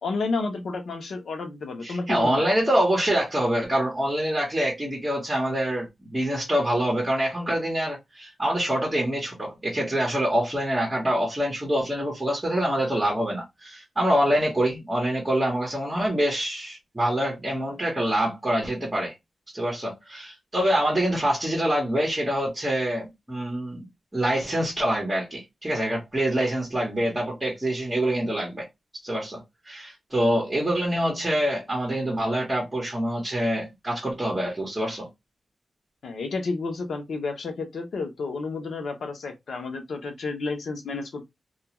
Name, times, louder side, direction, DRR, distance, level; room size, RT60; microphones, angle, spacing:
voice 1, 0.0-2.5 36.0-41.2, left 3 dB, 80° left, 0.8 m, -31 dB
voice 2, 1.8-19.1 19.5-23.8 24.1-28.7 29.0-29.4 29.7-35.1, right 1 dB, 15° right, 1.0 m, -25 dB
2.4 x 2.3 x 2.9 m
wide cardioid pair, 115°, 0 cm